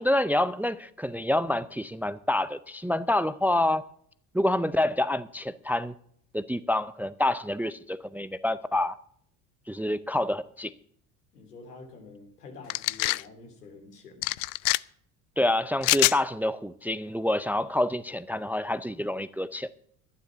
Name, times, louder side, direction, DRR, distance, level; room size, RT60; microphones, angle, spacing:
voice 1, 0.0-3.8 4.3-5.9 6.3-9.0 9.7-10.7 15.4-19.7, left 1 dB, 5° right, 17 dB, 0.5 m, -27 dB
voice 2, 11.3-14.3, left 3 dB, 85° left, 4 dB, 2.9 m, -47 dB
sound 1, 12.7-13.2 14.2-14.8 15.8-16.2, left 23 dB, 60° left, 0.5 m, -24 dB
11.5 x 10.0 x 6.1 m, 0.63 s
hypercardioid pair, 65°, 46 cm